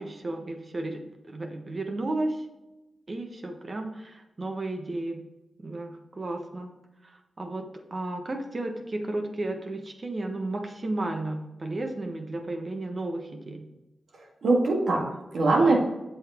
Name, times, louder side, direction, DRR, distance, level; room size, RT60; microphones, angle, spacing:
voice 1, 0.0-2.5 3.1-5.2 5.6-6.7 7.0-13.7, right 2 dB, 45° right, 4 dB, 1.2 m, -33 dB
voice 2, 14.1-15.8, right 3 dB, 75° right, -1 dB, 1.9 m, -23 dB
7.7 x 6.1 x 3.6 m, 0.99 s
supercardioid pair, 40°, 0 cm